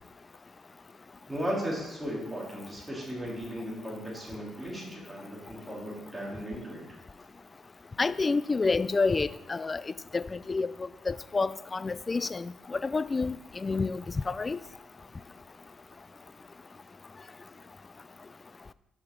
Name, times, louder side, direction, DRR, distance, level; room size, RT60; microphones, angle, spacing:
voice 1, 1.3-6.8, equal, 5° right, -5 dB, 3.2 m, -36 dB
voice 2, 8.0-14.6, left 4 dB, 30° left, 17 dB, 0.3 m, -29 dB
8.1 x 5.8 x 4.5 m, 1.0 s
cardioid pair, 90°, 0 cm